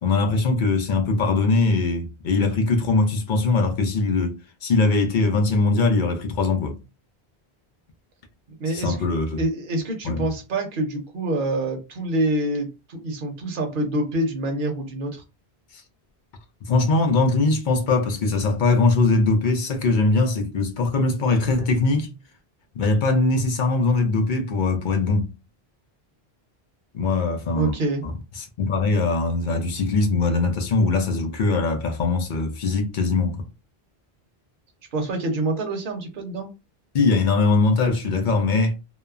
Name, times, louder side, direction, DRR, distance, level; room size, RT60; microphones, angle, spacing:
voice 1, 0.0-6.8 8.7-9.4 10.0-10.3 16.7-22.1 22.8-25.3 26.9-27.7 28.0-28.1 28.6-33.5 36.9-38.7, left 3 dB, 55° left, 0.7 m, -21 dB
voice 2, 8.6-9.1 9.4-15.2 27.5-28.0 34.9-36.5, right 1 dB, 55° right, 0.9 m, -26 dB
3.0 x 2.0 x 2.3 m
omnidirectional pair, 1.1 m